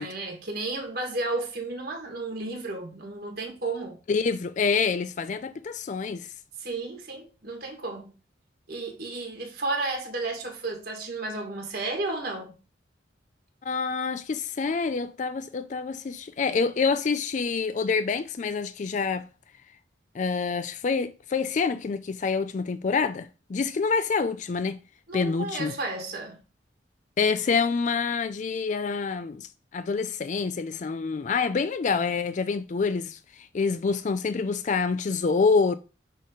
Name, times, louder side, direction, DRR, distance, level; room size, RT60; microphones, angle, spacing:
voice 1, 0.0-4.0 6.6-8.0 8.7-12.6 25.1-26.4, right 2 dB, 55° right, 1.7 m, -33 dB
voice 2, 4.1-6.3 13.6-19.3 20.1-24.8 25.1-25.7 27.2-35.8, left 5 dB, 40° left, 0.4 m, -27 dB
6.5 x 3.7 x 5.0 m
head